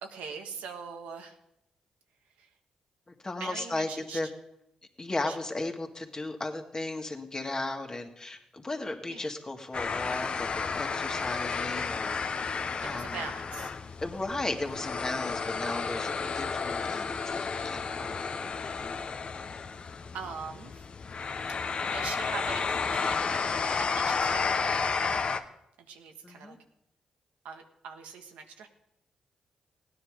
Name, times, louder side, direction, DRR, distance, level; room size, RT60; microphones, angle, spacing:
voice 1, 0.0-1.3 2.4-2.5 3.4-4.2 5.3-5.4 9.1-9.3 12.8-13.7 20.1-20.8 21.5-25.5 25.9-26.6 27.4-28.7, right 6 dB, 85° right, 4 dB, 1.4 m, -42 dB
voice 2, 3.1-4.3 5.0-12.2 12.8-13.3 14.0-18.9 26.2-26.6, left 2 dB, 30° left, 4 dB, 2.1 m, -36 dB
sound 1, 9.7-25.4, left 5 dB, 50° left, 0.9 m, -32 dB
16.5 x 9.8 x 5.1 m, 0.82 s
supercardioid pair, 50°, 2 cm